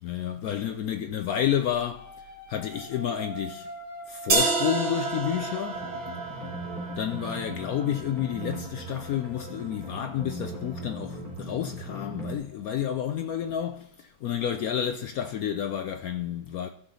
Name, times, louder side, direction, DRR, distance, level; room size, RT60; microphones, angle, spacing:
voice 1, 0.0-2.1 2.5-3.7 4.1-5.8 7.0-16.7, left 10 dB, 75° left, 0.8 m, -30 dB
sound 1, 1.9-7.6 8.2-10.5 12.0-13.1, equal, 30° left, 0.9 m, -45 dB
sound 2, 4.3-10.3, right 3 dB, 85° right, 2.4 m, -31 dB
sound 3, 5.7-12.4, right 1 dB, 20° right, 3.8 m, -38 dB
14.5 x 5.8 x 3.9 m
omnidirectional pair, 2.0 m